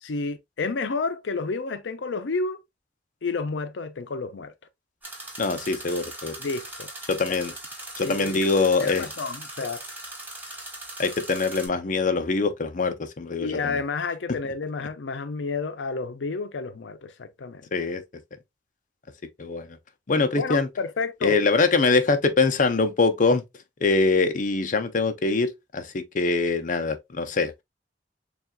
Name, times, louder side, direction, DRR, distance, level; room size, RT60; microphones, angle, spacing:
voice 1, 0.0-2.6 3.2-4.5 6.4-6.9 7.3-7.4 8.0-9.8 13.4-17.7 20.4-21.4, left 4 dB, 90° left, 0.5 m, -30 dB
sound 1, 5.0-11.7, right 1 dB, 10° right, 1.4 m, -39 dB
voice 2, 5.4-6.4 7.1-7.5 8.0-9.1 11.0-13.8 14.3-14.4 17.7-18.0 19.4-19.7 20.1-20.7 21.2-23.4 23.8-27.5, left 3 dB, 45° left, 0.6 m, -23 dB
6.9 x 2.4 x 2.2 m
head